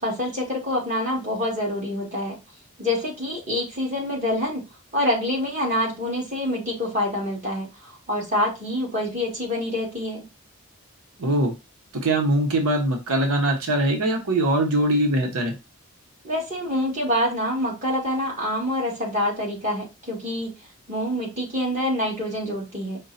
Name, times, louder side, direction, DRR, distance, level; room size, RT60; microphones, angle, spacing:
voice 1, 0.0-2.3 2.8-4.6 4.9-10.2 16.2-20.5 20.9-23.0, left 1 dB, 35° right, -4 dB, 2.0 m, -26 dB
voice 2, 11.2-11.5 11.9-15.5, right 1 dB, 85° right, 2 dB, 0.9 m, -22 dB
5.2 x 2.2 x 3.9 m, 0.26 s
head